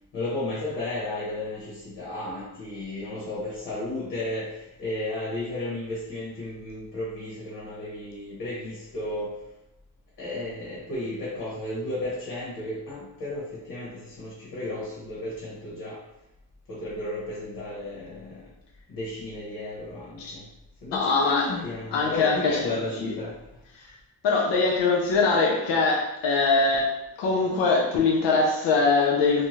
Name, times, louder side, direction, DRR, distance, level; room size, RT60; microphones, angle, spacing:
voice 1, 0.1-9.4 10.2-16.0 16.7-18.5 18.9-20.5 20.8-23.6, left 1 dB, 60° left, -6 dB, 1.1 m, -33 dB
voice 2, 20.9-21.5 21.9-22.6 23.8-23.9 24.2-29.5, left 4 dB, 85° left, 0 dB, 0.6 m, -22 dB
2.7 x 2.2 x 3.0 m, 0.89 s
cardioid pair, 165°, 42 cm